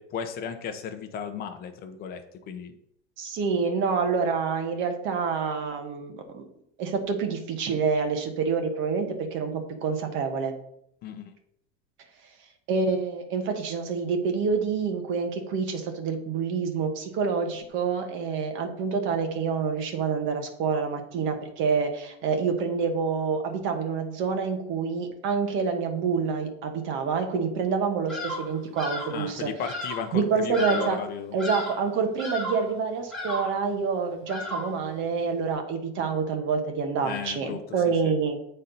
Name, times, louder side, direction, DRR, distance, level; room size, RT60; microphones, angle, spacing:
voice 1, 0.0-2.7 11.0-11.2 29.1-31.4 37.0-38.1, left 7 dB, 30° left, 7 dB, 0.7 m, -35 dB
voice 2, 3.2-6.5 6.8-10.5 12.7-29.5 30.1-31.0 31.3-38.4, right 5 dB, 40° right, 5 dB, 1.1 m, -27 dB
Bird vocalization bird call bird song, 28.1-28.5 28.8-29.2 29.6-30.1 30.5-31.1 31.4-31.9 32.2-32.7 33.1-33.6 34.3-34.8, left 2 dB, ahead, 2.2 m, -34 dB
8.2 x 4.4 x 3.9 m, 0.74 s
supercardioid pair, 160°, 32 cm